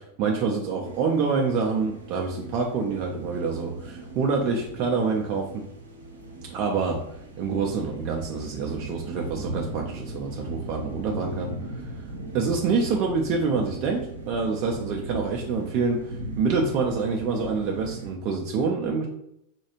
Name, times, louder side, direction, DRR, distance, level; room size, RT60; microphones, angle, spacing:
voice 1, 0.2-5.4 6.5-7.0 7.4-11.5 12.3-16.0 16.4-19.1, right 4 dB, 40° right, 1 dB, 0.5 m, -26 dB
sound 1, 0.8-18.1, right 2 dB, 80° right, 0.7 m, -38 dB
4.3 x 2.3 x 2.9 m, 0.76 s
figure-of-eight pair, 90°, 0 cm